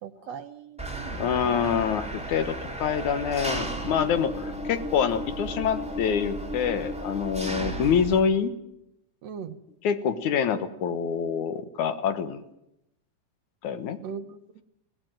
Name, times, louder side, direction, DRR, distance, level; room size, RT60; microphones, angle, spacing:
voice 1, 0.0-1.7 7.6-7.8 9.2-9.6 14.0-14.6, right 7 dB, 65° right, 10 dB, 2.0 m, -40 dB
Engine, 0.8-8.2, right 1 dB, ahead, 2.8 m, -34 dB
voice 2, 1.2-8.6 9.8-12.4 13.6-14.0, left 7 dB, 80° left, 11 dB, 2.8 m, -26 dB
20.5 x 17.5 x 9.1 m, 0.83 s
omnidirectional pair, 3.4 m